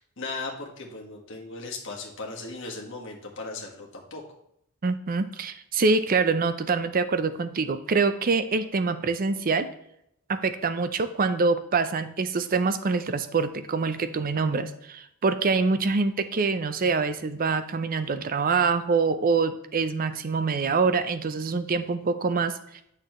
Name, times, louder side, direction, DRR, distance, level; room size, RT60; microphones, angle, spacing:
voice 1, 0.0-4.2, left 3 dB, 60° left, -1 dB, 1.6 m, -37 dB
voice 2, 4.8-9.7 10.3-22.8, right 4 dB, 40° right, 11 dB, 0.5 m, -25 dB
8.6 x 6.5 x 3.1 m, 0.76 s
head